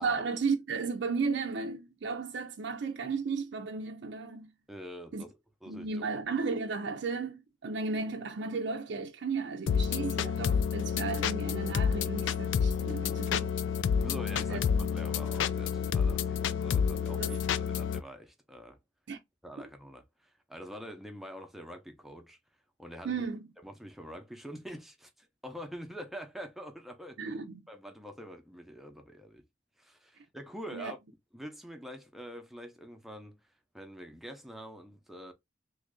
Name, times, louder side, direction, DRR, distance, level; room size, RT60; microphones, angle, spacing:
voice 1, 0.0-4.5 5.1-5.2 5.7-13.5 14.5-14.9 17.2-17.4 19.1-19.2 23.0-23.4 27.2-27.6 30.7-30.9, right 4 dB, 70° right, 0.5 m, -34 dB
voice 2, 4.7-6.2 14.0-18.8 19.4-22.4 22.8-23.3 23.6-27.4 27.7-29.4 29.8-31.0 31.3-33.4 33.7-35.3, equal, ahead, 0.6 m, -45 dB
sound 1, 9.7-18.0, left 7 dB, 80° left, 0.3 m, -29 dB
3.1 x 2.4 x 3.6 m
head